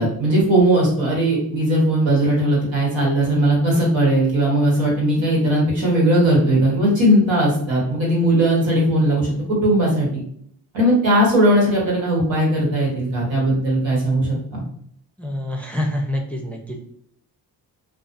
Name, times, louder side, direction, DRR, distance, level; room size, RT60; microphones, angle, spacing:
voice 1, 0.0-10.1 10.7-14.6, right 1 dB, 80° right, -4 dB, 1.3 m, -18 dB
voice 2, 15.2-16.8, left 1 dB, 5° left, 0 dB, 0.5 m, -26 dB
2.4 x 2.3 x 2.6 m, 0.65 s
supercardioid pair, 55°, 44 cm